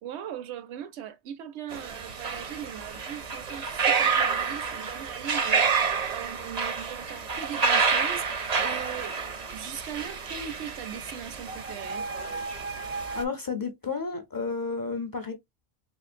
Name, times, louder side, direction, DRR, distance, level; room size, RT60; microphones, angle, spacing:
voice 1, 0.0-12.1, right 9 dB, 75° right, 0.8 m, -39 dB
sound 1, 1.7-13.2, right 5 dB, 45° right, 0.5 m, -29 dB
voice 2, 13.1-15.3, left 4 dB, 25° left, 0.5 m, -31 dB
3.6 x 3.2 x 2.5 m
omnidirectional pair, 1.2 m